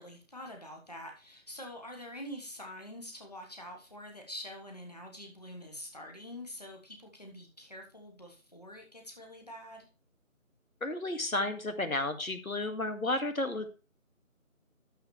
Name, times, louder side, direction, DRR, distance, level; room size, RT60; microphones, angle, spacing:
voice 1, 0.0-9.9, left 1 dB, 30° left, 2 dB, 1.5 m, -46 dB
voice 2, 10.8-13.7, left 2 dB, 80° left, 8 dB, 2.0 m, -32 dB
12.5 x 7.1 x 3.2 m, 0.33 s
figure-of-eight pair, 170°, 41 cm